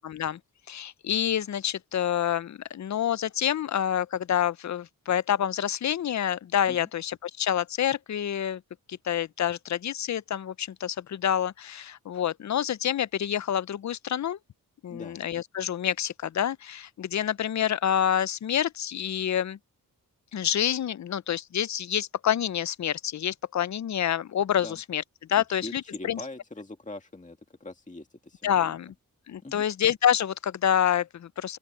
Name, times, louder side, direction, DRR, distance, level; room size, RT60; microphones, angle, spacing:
voice 1, 0.0-0.4 0.7-8.6 8.9-14.4 14.8-19.6 20.3-25.0 25.3-26.2 28.4-28.9 29.3-31.6, left 10 dB, 50° left, 0.5 m, -27 dB
voice 2, 14.9-15.2 24.6-24.8 25.3-28.7 29.4-29.6, left 2 dB, 20° left, 2.0 m, -42 dB
open air
wide cardioid pair, 95°, 36 cm